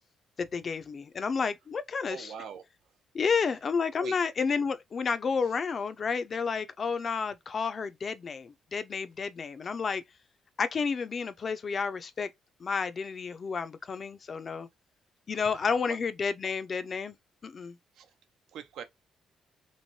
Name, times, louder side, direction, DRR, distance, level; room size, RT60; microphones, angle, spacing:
voice 1, 0.4-2.3 3.1-10.0 10.6-12.3 12.6-14.7 15.3-17.2 17.4-17.8, left 5 dB, 45° left, 0.4 m, -31 dB
voice 2, 2.1-2.6 3.3-3.4 4.0-4.2 15.5-16.0 18.0-18.1 18.5-18.8, right 8 dB, 80° right, 0.5 m, -43 dB
3.1 x 2.5 x 2.7 m
cardioid pair, 90°, 0 cm